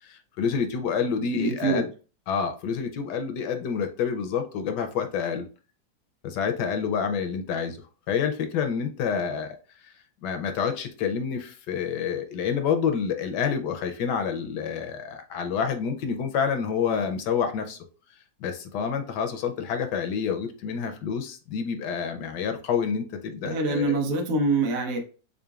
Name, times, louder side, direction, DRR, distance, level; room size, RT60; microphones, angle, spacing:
voice 1, 0.0-1.9 2.3-5.5 6.2-7.8 8.1-9.6 9.8-9.9 10.2-17.8 18.4-24.0, left 6 dB, 75° left, 6 dB, 1.1 m, -28 dB
voice 2, 1.3-1.9 23.4-25.0, right 3 dB, 55° right, 2 dB, 0.8 m, -25 dB
3.8 x 3.6 x 2.3 m, 0.36 s
omnidirectional pair, 2.0 m